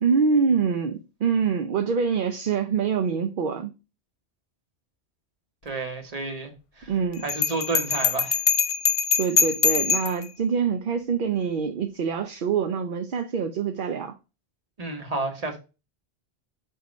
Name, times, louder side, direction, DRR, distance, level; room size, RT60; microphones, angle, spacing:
voice 1, 0.0-3.7 6.9-7.2 9.2-14.1, right 6 dB, 60° right, 0.7 m, -25 dB
voice 2, 5.6-6.9 7.2-8.4 14.8-15.6, right 3 dB, 35° right, 1.3 m, -31 dB
Bell, 7.3-10.2, left 6 dB, 50° left, 0.4 m, -23 dB
7.8 x 2.9 x 5.1 m
omnidirectional pair, 1.1 m